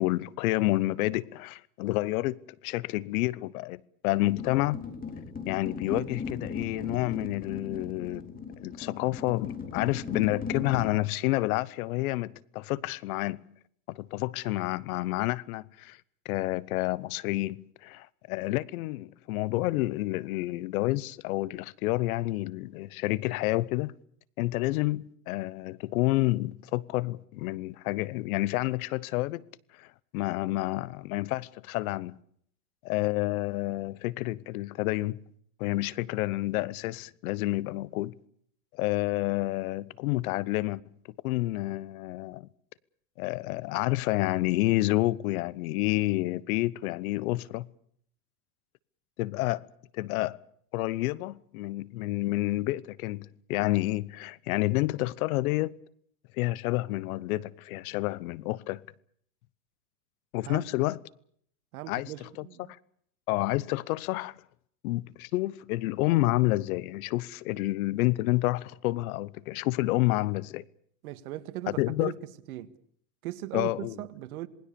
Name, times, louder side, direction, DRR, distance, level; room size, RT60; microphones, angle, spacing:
voice 1, 0.0-2.4 2.6-4.9 5.5-13.5 13.9-16.0 16.2-24.0 24.4-29.4 29.7-32.2 32.8-35.2 35.6-38.1 38.7-40.8 41.2-42.5 43.2-47.7 49.2-49.7 49.9-50.4 50.7-55.7 56.3-58.8 60.3-61.0 61.9-62.8 63.3-64.4 64.8-70.6 71.7-72.1 73.5-74.0, left 18 dB, 75° left, 1.1 m, -29 dB
sound 1, 4.2-10.9, left 5 dB, 20° left, 3.8 m, -38 dB
voice 2, 61.7-62.7 71.0-72.2 72.5-72.7 73.2-74.5, right 15 dB, 80° right, 2.0 m, -38 dB
27.5 x 20.0 x 7.0 m
supercardioid pair, 115°, 43 cm